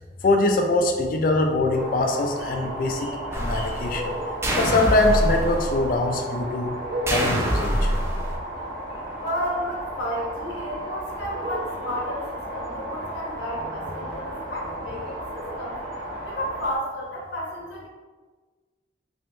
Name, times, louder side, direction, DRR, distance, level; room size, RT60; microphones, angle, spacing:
voice 1, 0.2-4.1 4.6-6.7 7.1-7.9, left 2 dB, 50° left, 3 dB, 0.4 m, -23 dB
sound 1, 1.7-16.8, right 1 dB, 55° right, 1.0 m, -33 dB
sound 2, 3.3-4.1 4.4-6.0 7.1-8.4, equal, 15° right, 0.4 m, -25 dB
voice 2, 9.2-15.8 16.2-17.9, equal, 75° left, -3 dB, 1.0 m, -32 dB
3.4 x 3.4 x 2.6 m, 1.4 s
head